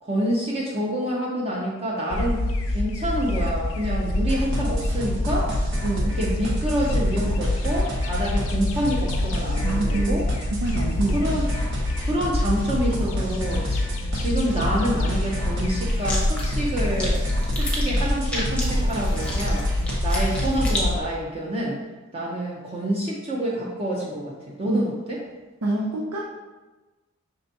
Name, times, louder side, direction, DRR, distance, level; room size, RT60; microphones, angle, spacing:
voice 1, 0.0-2.4 2.7-5.5 6.1-10.2 11.1-11.5 12.0-13.9 14.1-17.2 17.4-19.7 20.0-21.8 22.1-25.2, right 1 dB, 30° right, -4 dB, 0.6 m, -27 dB
sound 1, 2.1-21.0, left 1 dB, 65° left, 0.5 m, -26 dB
sound 2, 4.3-20.8, equal, 55° right, 0.9 m, -33 dB
voice 2, 5.8-6.2 9.6-10.2 10.5-11.3 24.6-24.8 25.6-26.3, right 2 dB, 90° right, -2 dB, 0.5 m, -26 dB
sound 3, 15.9-20.8, left 1 dB, 5° left, 0.7 m, -33 dB
5.5 x 3.4 x 2.6 m, 1.2 s
head